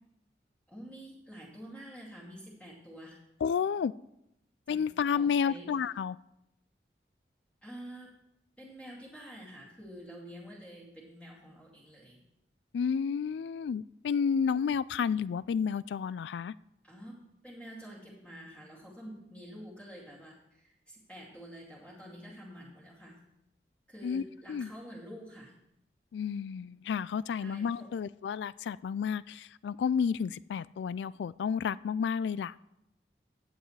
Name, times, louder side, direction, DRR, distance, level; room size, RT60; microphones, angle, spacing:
voice 1, 0.7-3.2 4.7-4.8 5.1-5.7 7.6-8.1 8.6-12.2 16.8-17.2 17.4-23.2 23.9-25.5 27.4-27.9, equal, 5° left, -4 dB, 2.4 m, -48 dB
voice 2, 3.4-3.9 4.7-6.2 12.7-16.5 24.0-24.2 24.5-24.7 26.1-32.5, left 6 dB, 85° left, 20 dB, 0.3 m, -31 dB
15.0 x 8.8 x 3.2 m, 0.83 s
head